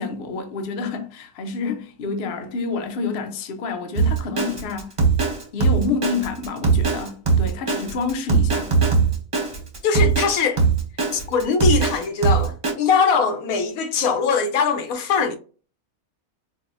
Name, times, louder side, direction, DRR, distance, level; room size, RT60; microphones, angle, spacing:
voice 1, 0.0-4.9 5.5-8.7, left 4 dB, 55° left, 0.7 m, -28 dB
Drum kit, 4.0-12.7, right 5 dB, 30° right, 0.7 m, -20 dB
voice 2, 9.8-10.7 11.1-15.4, left 5 dB, 75° left, 1.0 m, -21 dB
4.6 x 2.1 x 2.5 m
omnidirectional pair, 1.6 m